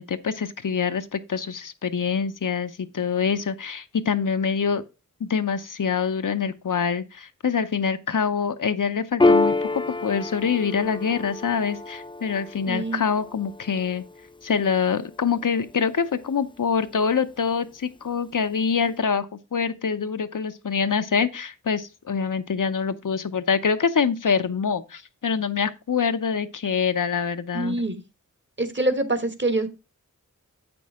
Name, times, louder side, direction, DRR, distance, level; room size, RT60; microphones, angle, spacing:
voice 1, 0.0-4.8 5.2-14.0 14.4-19.3 19.5-27.8, left 6 dB, 75° left, 0.7 m, -25 dB
Piano, 9.2-16.1, left 2 dB, 15° left, 0.3 m, -27 dB
voice 2, 12.7-13.0 27.5-28.0 28.6-29.7, right 2 dB, 35° right, 1.3 m, -25 dB
8.3 x 6.1 x 3.6 m
wide cardioid pair, 60°, 32 cm